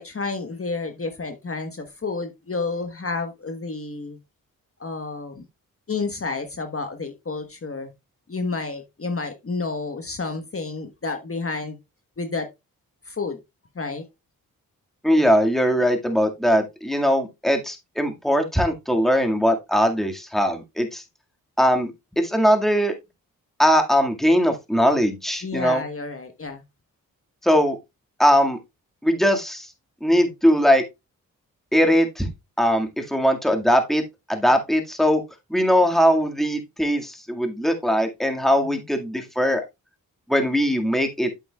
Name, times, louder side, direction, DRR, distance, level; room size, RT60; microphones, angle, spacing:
voice 1, 0.0-4.2 4.8-5.4 5.9-7.9 8.3-11.8 12.2-12.5 13.1-13.4 13.7-14.0 25.4-26.6 38.6-38.8, left 3 dB, 40° left, 1.3 m, -30 dB
voice 2, 15.0-21.0 21.6-22.9 23.6-25.8 27.4-27.8 28.2-28.6 29.0-29.7 30.0-30.8 31.7-32.3 32.6-34.0 34.3-35.2 35.5-39.6 40.3-41.3, equal, ahead, 1.9 m, -20 dB
8.3 x 7.7 x 2.3 m
supercardioid pair, 40°, 36 cm